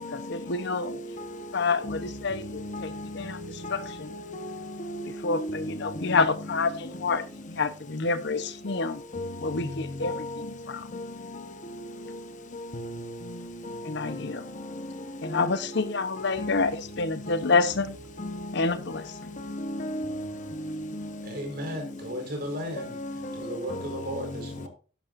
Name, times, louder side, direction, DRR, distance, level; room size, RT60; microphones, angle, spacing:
voice 1, 0.1-1.0 1.5-3.4 3.7-4.1 5.2-9.0 9.4-10.8 13.8-14.4 15.2-18.0 18.5-19.1, left 4 dB, 60° left, 0.9 m, -28 dB
voice 2, 2.5-4.5 4.8-5.7 9.1-9.3 10.0-10.5 10.9-11.1 12.5-13.1 13.7-13.8 15.2-15.5 16.2-16.6 17.3-17.5 18.2-18.4 19.4-20.3 20.9-21.1 22.8-23.4 23.7-23.8, left 1 dB, 40° left, 1.2 m, -35 dB
voice 3, 21.2-24.7, equal, 50° right, 4.6 m, -35 dB
11.5 x 11.5 x 2.6 m
head